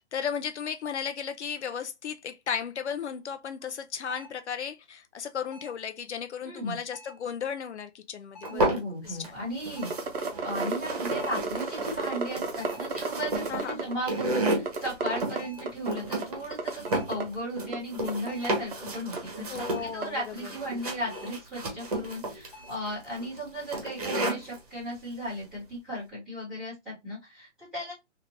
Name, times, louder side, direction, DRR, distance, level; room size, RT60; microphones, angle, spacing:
voice 1, 0.0-8.7 9.1-9.2 13.5-13.8 19.5-20.5, left 7 dB, 70° left, 0.5 m, -35 dB
sound 1, 4.1-4.5 5.5-5.9 6.9-7.3 8.4-8.7 9.8-10.1 11.2-11.6 12.6-13.0 14.0-14.4 15.4-15.8 16.9-17.2 18.3-18.7 19.7-20.1 21.1-21.5 22.5-22.8, left 2 dB, 30° left, 0.7 m, -50 dB
voice 2, 6.4-6.8 8.5-9.9 10.4-27.9, equal, ahead, 0.8 m, -36 dB
sound 2, 8.4-9.3 9.6-24.6, right 1 dB, 35° right, 1.1 m, -33 dB
sound 3, 9.8-13.9 14.2-15.4 15.7-16.3 16.5-17.2 17.7-17.8 18.1-18.3 18.7-18.8 19.2-19.3 20.0-20.1, right 4 dB, 50° right, 0.8 m, -31 dB
3.2 x 2.8 x 2.6 m
hypercardioid pair, 180°, 36 cm